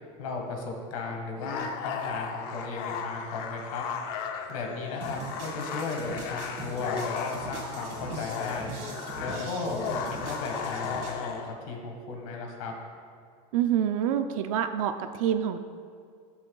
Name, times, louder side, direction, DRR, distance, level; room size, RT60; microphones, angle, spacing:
voice 1, 0.2-3.9 4.5-8.7 9.2-12.7, left 3 dB, 75° left, 1 dB, 1.6 m, -35 dB
sound 1, 1.4-11.5, left 6 dB, 55° left, 0.7 m, -35 dB
sound 2, 5.0-11.2, right 4 dB, 50° right, 1.6 m, -42 dB
voice 2, 13.5-15.6, right 9 dB, 75° right, 8 dB, 0.5 m, -27 dB
13.0 x 6.3 x 2.3 m, 2.2 s
supercardioid pair, 135°, 17 cm